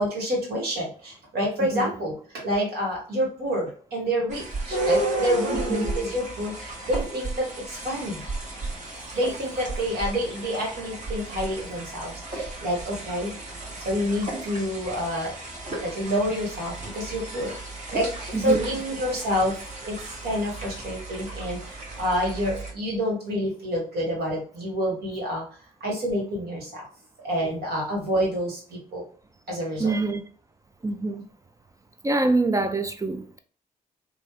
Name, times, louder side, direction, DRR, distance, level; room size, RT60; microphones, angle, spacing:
voice 1, 0.0-8.2 9.1-13.3 13.8-15.3 15.8-17.5 17.9-19.6 19.8-20.0 20.2-25.4 25.8-26.9 27.2-29.0 29.5-30.0, equal, 65° right, -2 dB, 1.4 m, -28 dB
voice 2, 1.6-2.0 5.5-5.9 9.3-9.4 18.3-18.7 29.8-30.2 30.8-31.3 32.0-33.4, right 3 dB, 20° right, 8 dB, 0.4 m, -25 dB
sound 1, 4.3-22.7, right 2 dB, 45° right, 1.2 m, -34 dB
3.0 x 2.1 x 3.0 m, 0.43 s
hypercardioid pair, 40°, 18 cm